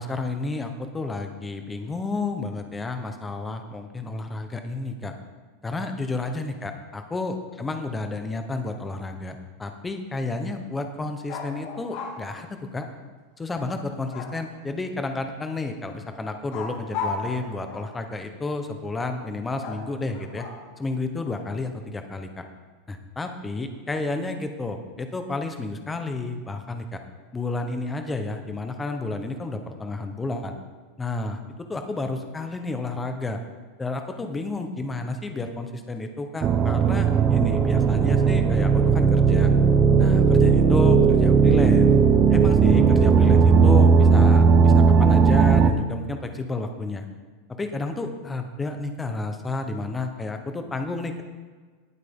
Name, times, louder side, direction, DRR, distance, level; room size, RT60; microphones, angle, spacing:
voice 1, 0.0-5.1 5.6-12.9 13.4-20.5 20.8-22.4 22.9-27.0 27.3-30.5 31.0-31.4 31.7-33.4 33.8-39.5 40.0-41.9 42.3-47.1 47.6-51.2, left 3 dB, 10° left, 6 dB, 0.8 m, -31 dB
sound 1, 11.3-12.2 14.1-14.7 16.5-18.0 19.6-20.8, left 4 dB, 40° left, 2.3 m, -35 dB
sound 2, 36.4-45.7, right 5 dB, 20° right, 0.6 m, -17 dB
18.5 x 8.1 x 3.6 m, 1.4 s
supercardioid pair, 175°, 0 cm